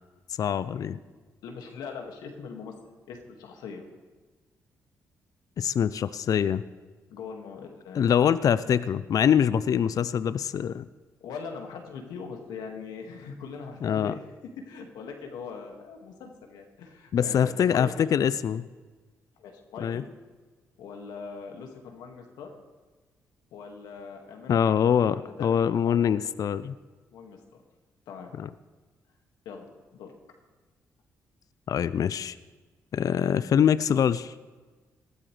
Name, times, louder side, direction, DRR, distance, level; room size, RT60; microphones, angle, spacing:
voice 1, 0.4-1.0 5.6-6.6 7.9-10.9 13.8-14.1 17.1-18.7 19.8-20.0 24.5-26.7 28.4-28.5 31.7-32.3 32.9-34.3, left 8 dB, 60° left, 15 dB, 0.5 m, -24 dB
voice 2, 1.4-2.7 3.1-3.8 7.1-8.2 11.2-14.3 14.7-18.1 19.4-20.1 20.8-22.5 23.5-24.8 25.1-25.5 25.9-26.0 27.1-27.6 28.1-28.3 29.5-30.1, left 5 dB, 80° left, 3 dB, 2.0 m, -41 dB
20.0 x 13.5 x 3.3 m, 1.4 s
supercardioid pair, 50°, 7 cm